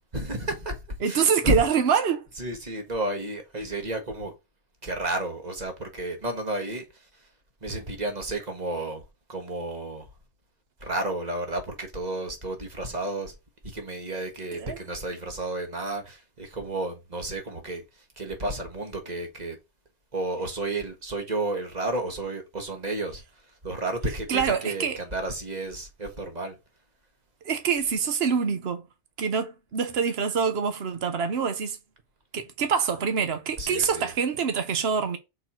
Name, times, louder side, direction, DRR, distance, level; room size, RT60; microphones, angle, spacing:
voice 1, 0.1-0.8 1.0-1.6 2.4-4.3 4.8-7.1 7.6-9.0 9.3-10.1 10.8-13.3 13.6-19.6 20.1-23.2 23.6-26.5 33.6-34.1, right 1 dB, 40° right, 1.6 m, -32 dB
voice 2, 1.0-2.2 14.6-14.8 24.3-25.0 27.4-28.9 29.2-31.8 32.3-35.2, right 6 dB, 65° right, 1.2 m, -25 dB
6.5 x 4.3 x 4.4 m
omnidirectional pair, 1.1 m